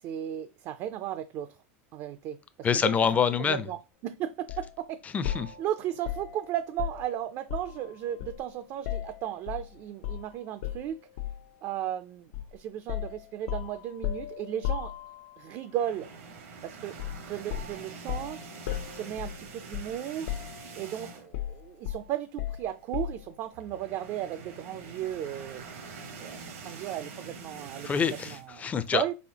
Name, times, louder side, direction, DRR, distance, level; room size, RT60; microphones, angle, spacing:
voice 1, 0.0-1.6 1.9-2.9 3.5-5.0 5.6-11.0 11.6-14.9 15.4-16.1 16.6-17.0 17.2-18.5 18.9-20.4 20.8-25.6 26.2-27.9 28.3-29.1, right 11 dB, 50° right, 0.4 m, -35 dB
voice 2, 2.6-3.6 5.1-5.5 27.8-29.0, left 6 dB, 20° left, 0.4 m, -26 dB
sound 1, 4.5-4.7 5.2-7.8 8.2-9.7 10.0-10.3 10.6-11.5 12.3-12.5 12.9-15.4 17.0-17.2 17.5-20.0 20.3-20.9 21.3-23.3, left 12 dB, 85° left, 0.6 m, -36 dB
sound 2, 15.7-21.5 21.8-22.0 22.3-22.4 23.4-28.5, right 4 dB, 85° right, 1.2 m, -45 dB
4.4 x 4.1 x 2.8 m
supercardioid pair, 120°, 7 cm